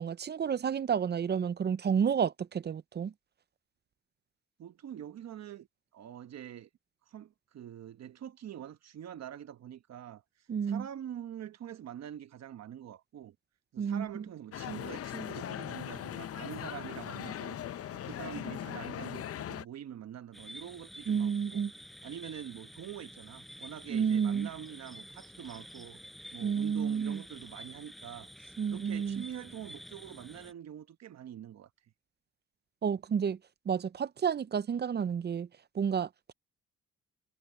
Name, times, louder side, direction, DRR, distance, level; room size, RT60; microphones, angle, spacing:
voice 1, 0.0-3.1 10.5-10.9 13.8-14.2 21.1-21.7 23.9-24.5 26.4-27.2 28.6-29.2 32.8-33.4 33.7-35.5 35.7-36.3, right 7 dB, 35° right, 0.6 m, -30 dB
voice 2, 4.6-5.7 5.9-6.7 7.1-10.2 10.6-13.3 13.7-17.6 17.9-21.6 22.0-26.0 26.3-31.7, right 10 dB, 60° right, 1.1 m, -45 dB
sound 1, 14.5-19.6, left 10 dB, 50° left, 0.7 m, -39 dB
sound 2, 20.3-30.5, equal, ahead, 6.1 m, -50 dB
cardioid pair, 90°, 30 cm